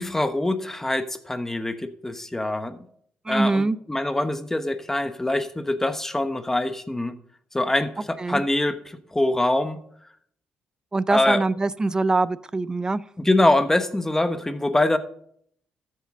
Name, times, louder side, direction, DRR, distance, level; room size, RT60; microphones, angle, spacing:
voice 1, 0.0-2.8 3.3-7.1 7.5-9.8 11.1-11.4 13.2-15.0, left 1 dB, 10° left, 10 dB, 1.1 m, -24 dB
voice 2, 3.3-3.8 8.2-8.4 10.9-13.0, right 3 dB, 20° right, 18 dB, 0.5 m, -23 dB
13.5 x 7.6 x 3.8 m, 0.65 s
cardioid pair, 85°, 3 cm